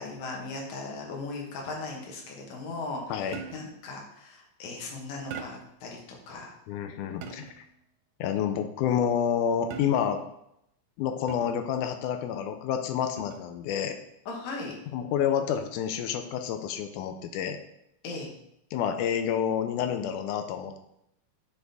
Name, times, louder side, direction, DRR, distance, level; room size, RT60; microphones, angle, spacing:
voice 1, 0.0-6.5 14.3-14.8 18.0-18.3, left 3 dB, 70° left, 0 dB, 2.6 m, -38 dB
sound 1, 3.3-3.8 5.3-5.8 7.2-7.7 9.7-10.3 11.3-11.7 13.2-13.5, right 6 dB, 75° right, 1.6 m, -42 dB
voice 2, 6.7-7.5 8.2-10.2 11.0-14.0 14.9-17.6 18.7-20.8, left 8 dB, 90° left, 7 dB, 2.1 m, -29 dB
9.5 x 4.1 x 3.5 m, 0.77 s
omnidirectional pair, 3.5 m